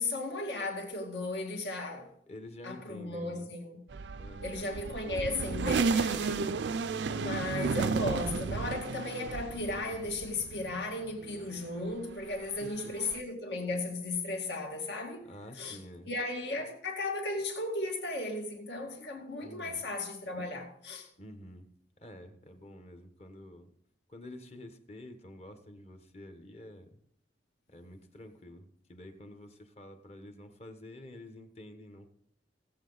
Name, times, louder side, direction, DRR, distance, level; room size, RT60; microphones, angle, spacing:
voice 1, 0.0-2.1 2.6-3.8 4.4-6.5 7.1-15.3 15.6-15.8 16.1-21.1, left 2 dB, 70° left, 2.1 m, -35 dB
voice 2, 2.3-3.5 4.2-4.7 7.0-7.4 12.5-12.9 15.3-16.1 19.4-19.8 21.2-21.7 22.0-23.7 24.1-26.9 27.7-32.1, left 1 dB, 35° left, 1.2 m, -49 dB
sound 1, 3.9-10.8 11.2-13.2, right 4 dB, 75° right, 0.5 m, -33 dB
17.0 x 7.7 x 4.0 m
head